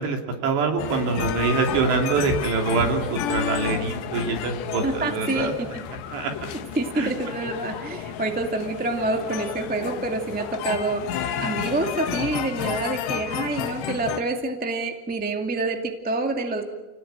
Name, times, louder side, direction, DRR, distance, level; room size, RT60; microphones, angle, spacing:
voice 1, 0.0-5.5 6.1-6.3 7.0-7.1, right 4 dB, 80° right, 3 dB, 5.0 m, -24 dB
sound 1, 0.8-14.2, left 9 dB, 80° left, 3.3 m, -31 dB
voice 2, 4.8-5.5 6.5-16.6, right 2 dB, 10° right, 4 dB, 0.4 m, -27 dB
29.5 x 18.5 x 8.9 m, 1.2 s
omnidirectional pair, 4.9 m